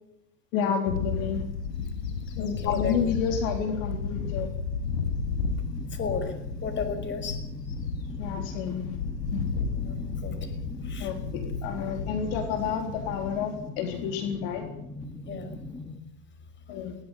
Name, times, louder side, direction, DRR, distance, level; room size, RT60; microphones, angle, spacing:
voice 1, 0.5-1.4 2.4-4.5 8.2-9.0 9.3-9.5 11.0-14.6 16.7-17.0, left 7 dB, 55° left, 4 dB, 3.9 m, -30 dB
Bird / Wind, 0.9-13.6, left 4 dB, 85° left, 5.9 m, -33 dB
voice 2, 2.4-2.9 5.9-6.3 6.6-7.4 9.8-10.6 10.8-11.1 15.3-15.5, left 6 dB, 25° left, 8 dB, 5.8 m, -34 dB
sound 1, 5.4-16.0, left 2 dB, 5° left, 2.5 m, -41 dB
20.5 x 19.5 x 9.2 m, 0.80 s
hypercardioid pair, 130°, 48 cm